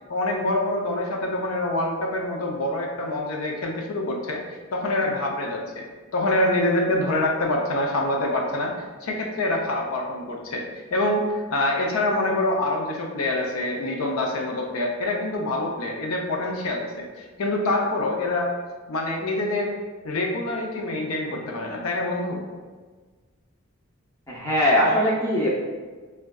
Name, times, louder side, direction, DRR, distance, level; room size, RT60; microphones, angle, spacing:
voice 1, 0.1-5.9 6.1-8.7 9.0-11.2 11.5-18.5 18.9-19.8 20.0-22.4, left 1 dB, 85° left, 0 dB, 0.5 m, -26 dB
voice 2, 24.3-25.5, left 1 dB, 15° left, -5 dB, 0.5 m, -21 dB
3.6 x 2.2 x 2.2 m, 1.4 s
head